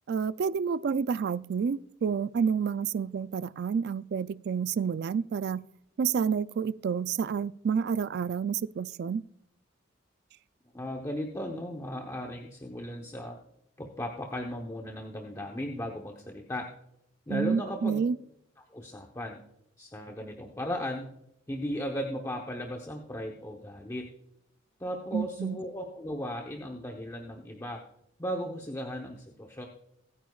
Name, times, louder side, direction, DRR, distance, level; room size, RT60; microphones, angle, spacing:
voice 1, 0.1-5.6 6.0-9.2 17.3-18.2 25.1-25.6, right 6 dB, 55° right, 0.3 m, -29 dB
voice 2, 10.7-13.4 13.8-16.7 17.3-18.0 18.7-19.4 19.8-21.1 21.5-24.1 24.8-27.8 28.2-29.7, equal, 15° left, 0.9 m, -36 dB
25.0 x 9.4 x 2.4 m
head